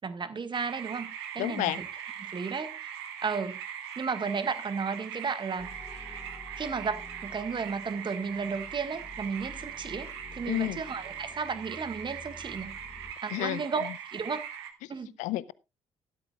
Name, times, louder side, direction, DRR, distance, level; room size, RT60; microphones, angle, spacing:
voice 1, 0.0-1.9 2.3-2.8 3.2-3.6 4.0-5.7 6.6-12.7 13.2-14.4 14.9-15.1, right 5 dB, 35° right, 1.7 m, -33 dB
sound 1, 0.5-14.7, right 9 dB, 75° right, 1.4 m, -41 dB
voice 2, 1.4-1.8 10.5-10.8 13.3-13.6 15.2-15.5, left 16 dB, 65° left, 0.6 m, -30 dB
sound 2, 5.6-13.1, left 2 dB, 10° left, 1.1 m, -50 dB
15.0 x 12.5 x 2.4 m
figure-of-eight pair, 45°, 14 cm